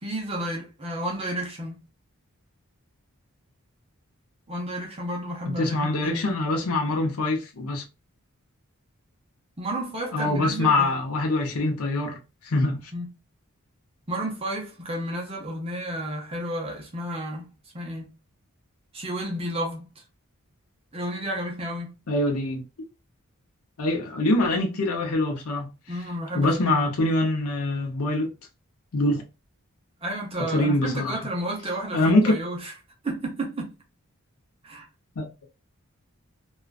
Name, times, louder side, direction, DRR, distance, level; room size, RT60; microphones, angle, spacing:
voice 1, 0.0-1.8 4.5-6.3 9.6-10.9 12.9-13.1 14.1-17.5 17.7-18.1 18.9-19.9 20.9-21.9 25.9-26.8 30.0-32.7 33.0-33.8 34.6-34.9, right 1 dB, 25° right, 0.6 m, -32 dB
voice 2, 5.5-7.8 10.1-12.9 22.1-22.6 23.8-25.7 26.3-28.3 28.9-29.2 30.4-31.2 31.9-32.3 35.2-35.3, left 2 dB, 80° left, 0.6 m, -24 dB
2.4 x 2.2 x 2.3 m
head